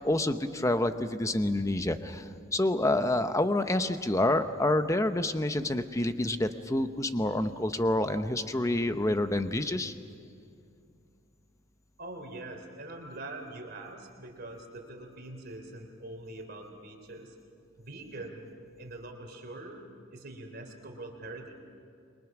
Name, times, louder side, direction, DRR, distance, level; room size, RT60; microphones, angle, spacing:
voice 1, 0.0-9.9, left 1 dB, 15° left, 9 dB, 0.8 m, -28 dB
voice 2, 12.0-17.4 17.8-18.5 18.8-21.5, right 2 dB, 50° right, 3 dB, 3.4 m, -43 dB
29.5 x 23.5 x 6.1 m, 2.5 s
head